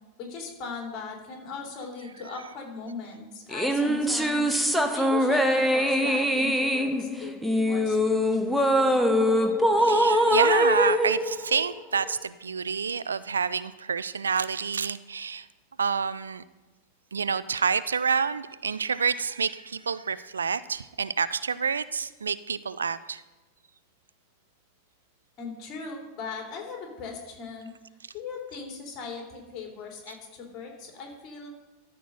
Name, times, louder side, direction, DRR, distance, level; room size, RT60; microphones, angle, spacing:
voice 1, 0.2-8.5 25.4-27.7 28.1-31.5, left 5 dB, 35° left, 2.8 m, -39 dB
sound 1, 3.5-12.1, equal, ahead, 0.8 m, -23 dB
voice 2, 9.8-15.5 15.8-16.4 17.1-23.2 30.1-30.2, right 6 dB, 70° right, 0.3 m, -28 dB
13.0 x 4.4 x 6.6 m
figure-of-eight pair, 90°, 0 cm